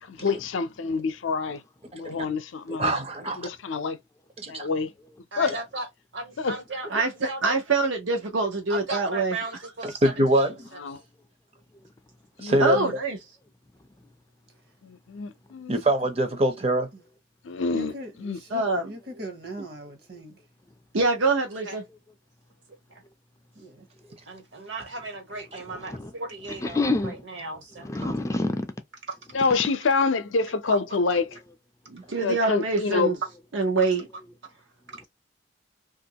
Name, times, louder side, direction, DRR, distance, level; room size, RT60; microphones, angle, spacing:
voice 1, 0.1-1.6 1.9-2.9 3.4-4.0 4.5-4.9 5.4-5.6 6.4-6.6 10.8-11.0 12.4-12.9 14.8-15.8 17.4-17.9 18.2-18.4 29.3-31.3 32.2-33.1, left 4 dB, 85° left, 0.5 m, -27 dB
voice 2, 1.9-2.3 2.7-3.5 4.4-4.7 5.5-5.6 9.8-10.7 12.4-12.8 15.7-16.9 25.5-25.6, right 1 dB, 30° right, 0.6 m, -24 dB
voice 3, 5.3-5.9 6.1-7.6 8.7-10.8 21.6-21.8 22.7-23.0 24.3-28.1 30.7-30.8, right 2 dB, 70° right, 1.3 m, -37 dB
voice 4, 6.9-9.3 12.6-13.2 18.5-18.9 20.9-21.8 31.9-33.2 33.5-34.1, right 3 dB, 85° right, 0.7 m, -25 dB
voice 5, 17.7-20.4 23.5-23.9, right 1 dB, 55° right, 0.9 m, -41 dB
voice 6, 25.7-26.1 26.5-27.2 27.8-28.7 35.0-35.1, left 2 dB, 15° left, 0.3 m, -28 dB
2.9 x 2.5 x 2.7 m
head